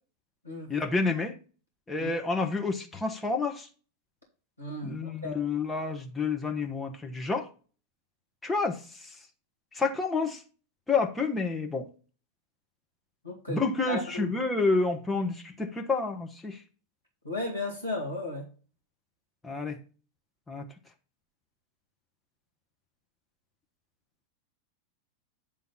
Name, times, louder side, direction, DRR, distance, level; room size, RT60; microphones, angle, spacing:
voice 1, 0.7-1.4 1.9-3.7 4.8-7.5 8.4-9.1 9.7-10.4 10.9-11.9 13.5-16.6 19.4-19.8 20.5-20.7, left 4 dB, 10° left, 1.2 m, -29 dB
voice 2, 4.6-5.4 13.2-14.3 17.2-18.5, left 2 dB, 85° left, 2.6 m, -35 dB
9.4 x 3.7 x 5.6 m
figure-of-eight pair, 90°, 0 cm